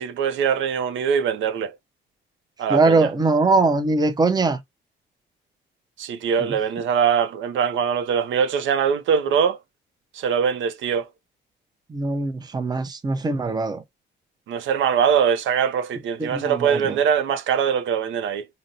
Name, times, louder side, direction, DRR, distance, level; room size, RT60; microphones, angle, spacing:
voice 1, 0.0-1.7 2.6-3.1 6.0-9.6 10.1-11.1 14.5-18.5, right 7 dB, 75° right, 0.5 m, -22 dB
voice 2, 2.7-4.6 6.4-6.5 11.9-13.8 16.2-17.0, right 3 dB, 20° right, 0.5 m, -21 dB
3.9 x 2.0 x 2.6 m
cardioid pair, 90°, 20 cm